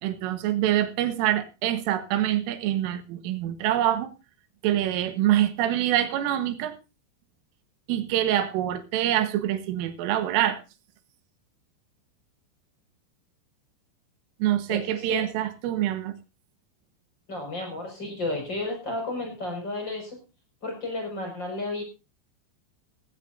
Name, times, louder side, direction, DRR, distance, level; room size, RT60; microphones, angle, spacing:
voice 1, 0.0-4.1 4.6-6.8 7.9-10.6 14.4-16.1, right 12 dB, 85° right, 10 dB, 3.8 m, -25 dB
voice 2, 14.7-15.3 17.3-20.2 20.6-21.8, left 2 dB, 20° left, 3 dB, 5.8 m, -32 dB
17.5 x 15.5 x 2.6 m, 0.29 s
omnidirectional pair, 5.8 m